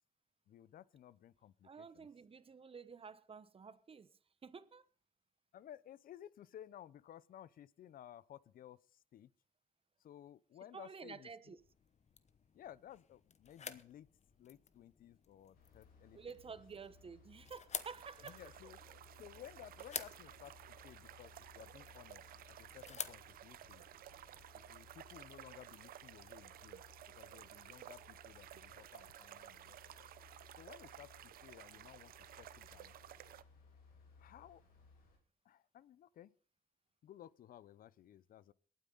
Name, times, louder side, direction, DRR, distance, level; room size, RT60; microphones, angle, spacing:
voice 1, 0.5-2.1 5.5-9.3 10.0-11.6 12.5-14.1 14.4-16.2 16.5-16.6 18.2-18.8 19.2-20.5 20.8-23.8 24.5-26.8 27.2-30.1 30.6-32.1 32.4-32.9 34.2-34.6 35.4-36.3 37.0-38.5, left 11 dB, 75° left, 0.6 m, -57 dB
voice 2, 1.6-4.8 10.7-11.6 16.1-18.4, right 5 dB, 40° right, 1.1 m, -51 dB
sound 1, 11.6-24.5, left 6 dB, 50° left, 1.0 m, -52 dB
sound 2, 15.5-35.2, left 4 dB, 90° left, 3.5 m, -64 dB
sound 3, 17.7-33.4, right 12 dB, 85° right, 0.7 m, -55 dB
23.5 x 9.3 x 3.9 m
cardioid pair, 75°, 15 cm